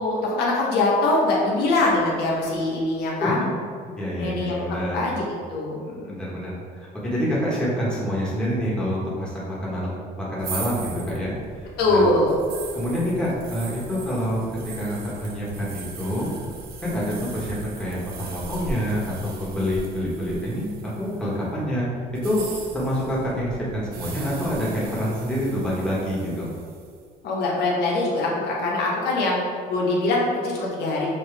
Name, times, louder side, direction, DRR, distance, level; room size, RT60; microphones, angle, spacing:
voice 1, 0.0-3.4 4.2-4.6 4.9-6.2 11.8-12.3 27.2-29.4 29.7-31.1, left 2 dB, 80° left, -3 dB, 1.0 m, -23 dB
voice 2, 3.9-5.0 6.1-9.9 10.2-12.1 12.7-14.4 14.7-16.3 16.8-19.1 19.4-21.9 22.2-22.4 22.7-26.5, equal, 5° left, -7 dB, 1.5 m, -27 dB
sound 1, 10.4-21.4 22.1-26.9, right 3 dB, 60° right, 0.7 m, -39 dB
5.7 x 2.7 x 3.4 m, 2.1 s
cardioid pair, 110°, 17 cm